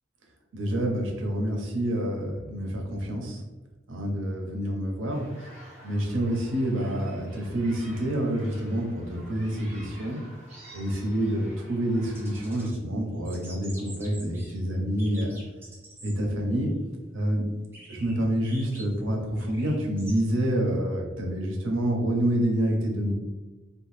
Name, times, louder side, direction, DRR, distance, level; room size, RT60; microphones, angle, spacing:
voice 1, 0.5-3.4 3.9-5.3 5.8-10.2 10.7-15.4 16.0-16.7 17.1-17.5 17.9-23.1, right 1 dB, 85° right, 1 dB, 0.6 m, -27 dB
sound 1, 5.1-12.7, right 1 dB, 35° right, 1.0 m, -50 dB
sound 2, 12.1-12.8 13.1-14.5 15.0-16.2 16.6-16.7 17.7-20.2, right 1 dB, 10° right, 0.6 m, -47 dB
2.8 x 2.3 x 3.1 m, 1.1 s
head